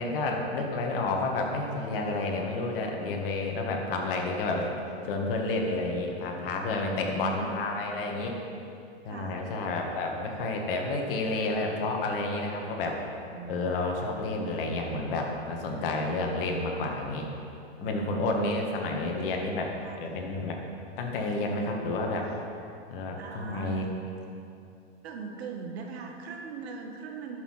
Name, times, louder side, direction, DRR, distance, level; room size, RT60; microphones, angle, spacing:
voice 1, 0.0-4.7 5.0-8.4 9.1-13.0 13.5-17.3 17.8-19.7 20.0-20.6 21.0-22.3 22.9-23.8, left 2 dB, 55° left, 2 dB, 1.8 m, -30 dB
voice 2, 6.8-7.5 9.1-9.4 13.3-13.7 16.0-16.1 17.8-18.2 19.8-20.0 23.2-24.0 25.0-27.4, right 4 dB, 65° right, 2 dB, 1.6 m, -39 dB
10.5 x 6.8 x 5.8 m, 2.6 s
hypercardioid pair, 135°, 33 cm